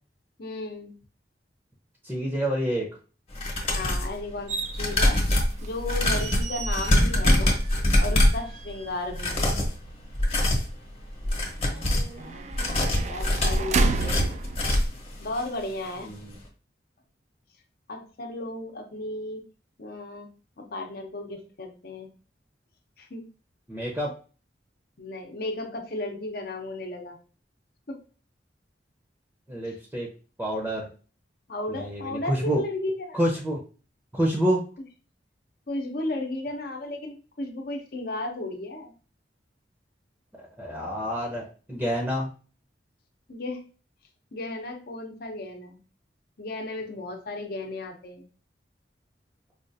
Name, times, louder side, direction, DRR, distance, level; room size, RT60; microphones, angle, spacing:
voice 1, 0.4-1.0 3.7-5.2 5.6-7.6 8.0-9.5 11.7-14.3 15.2-16.1 17.9-19.4 19.8-22.1 23.0-23.3 25.0-27.2 27.9-28.0 29.7-29.8 31.5-33.2 35.7-38.9 43.3-43.6 44.3-45.8 46.4-48.3, left 2 dB, 60° left, 3 dB, 0.8 m, -34 dB
voice 2, 2.0-2.9 16.0-16.4 23.7-24.1 29.5-30.1 30.4-30.9 31.7-32.6 33.1-33.6 34.1-34.6 40.6-42.3, equal, 10° right, -2 dB, 0.7 m, -27 dB
sound 1, 3.3-4.1 4.7-8.5 9.1-9.7 10.1-10.7 11.2-12.1 12.5-15.0 15.4-15.5 15.8-15.9, left 1 dB, 35° left, 1.0 m, -23 dB
sound 2, 4.5-15.4, right 3 dB, 40° right, 0.3 m, -33 dB
4.9 x 2.4 x 2.6 m, 0.37 s
head